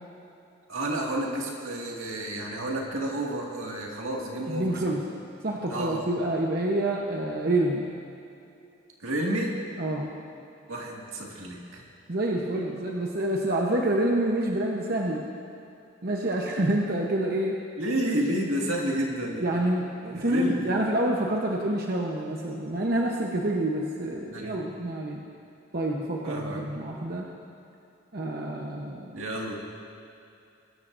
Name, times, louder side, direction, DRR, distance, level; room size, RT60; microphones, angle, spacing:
voice 1, 0.7-4.8 5.7-6.0 9.0-9.6 10.7-11.8 17.8-19.4 20.2-20.7 24.3-24.6 26.2-26.6 29.1-29.7, right 1 dB, 80° right, -2 dB, 2.0 m, -30 dB
voice 2, 4.5-5.0 5.4-7.9 9.8-10.1 12.1-15.2 16.0-17.6 19.4-25.2 25.7-27.3 28.1-29.1, right 1 dB, 50° right, -1 dB, 0.9 m, -27 dB
21.5 x 13.0 x 2.6 m, 2.6 s
head